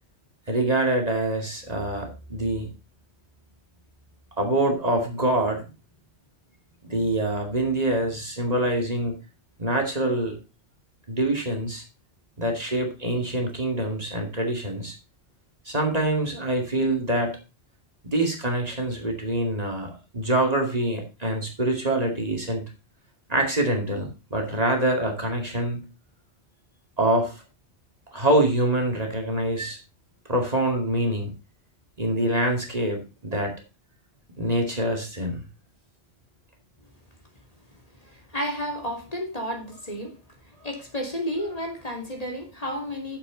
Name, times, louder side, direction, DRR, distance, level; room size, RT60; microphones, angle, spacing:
voice 1, 0.5-2.7 4.4-5.6 6.8-9.1 9.6-10.4 11.1-11.8 12.4-14.9 15.7-17.4 18.0-22.6 23.3-25.8 27.0-27.4 28.1-29.8 30.3-31.3 32.0-33.5 34.4-35.4, right 1 dB, 35° right, 2.5 m, -25 dB
voice 2, 38.0-40.2 40.4-43.2, equal, 35° left, 2.9 m, -32 dB
11.0 x 7.7 x 4.0 m
omnidirectional pair, 1.1 m